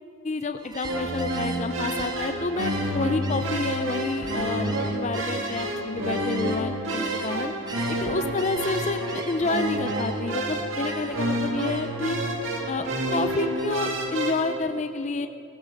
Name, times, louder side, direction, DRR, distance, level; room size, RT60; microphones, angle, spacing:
voice 1, 0.2-7.5 7.9-12.2 12.7-15.3, left 3 dB, 30° left, 9 dB, 0.4 m, -29 dB
Gull seagull, 0.6-7.4 7.7-10.4 10.8-11.3 11.6-12.1 12.4-13.9, right 2 dB, 20° right, 0.9 m, -40 dB
sound 1, 0.8-14.6, right 1 dB, 65° right, 2.0 m, -29 dB
18.5 x 13.0 x 5.2 m, 2.6 s
head